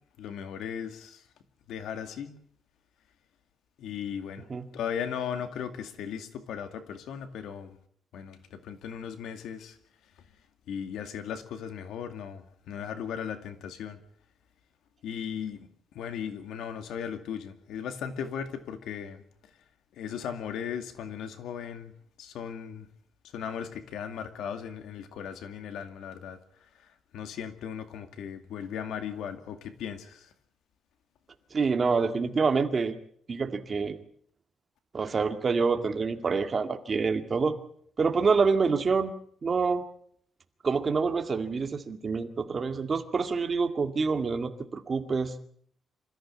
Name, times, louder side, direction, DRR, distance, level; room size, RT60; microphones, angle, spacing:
voice 1, 0.2-1.2 1.7-2.4 3.8-4.5 4.7-7.8 8.1-9.8 10.7-14.0 15.0-15.7 15.9-19.2 19.9-21.9 22.2-22.9 23.3-26.4 26.8-26.9 27.1-30.3, left 8 dB, 90° left, 2.3 m, -37 dB
voice 2, 31.5-32.9 33.3-34.0 34.9-37.6 38.0-39.1 39.4-39.8 40.6-45.3, right 4 dB, 30° right, 2.0 m, -27 dB
26.5 x 14.5 x 8.7 m
cardioid pair, 175°, 0 cm